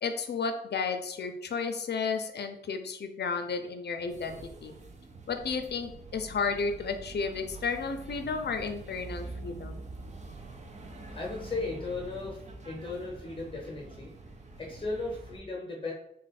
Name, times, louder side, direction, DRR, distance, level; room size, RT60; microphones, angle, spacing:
voice 1, 0.0-4.7 5.3-9.8, left 5 dB, 65° left, 7 dB, 0.5 m, -33 dB
sound 1, 4.1-15.4, right 2 dB, 40° right, 0.5 m, -45 dB
voice 2, 11.1-12.4 12.6-14.1 14.6-15.9, left 3 dB, 25° left, -3 dB, 0.8 m, -36 dB
3.8 x 2.4 x 4.1 m, 0.76 s
wide cardioid pair, 170°, 19 cm